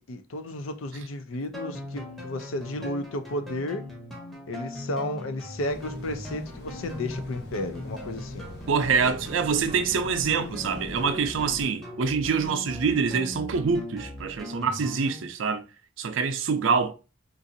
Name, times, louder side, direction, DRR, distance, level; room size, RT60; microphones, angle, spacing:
voice 1, 0.1-3.8 4.5-8.5, left 1 dB, 85° left, 0.5 m, -33 dB
sound 1, 1.5-15.3, left 1 dB, ahead, 0.7 m, -39 dB
sound 2, 5.7-11.7, left 1 dB, 55° left, 0.8 m, -43 dB
voice 2, 8.7-15.6 16.0-16.9, right 5 dB, 70° right, 0.5 m, -25 dB
3.9 x 2.5 x 2.6 m
head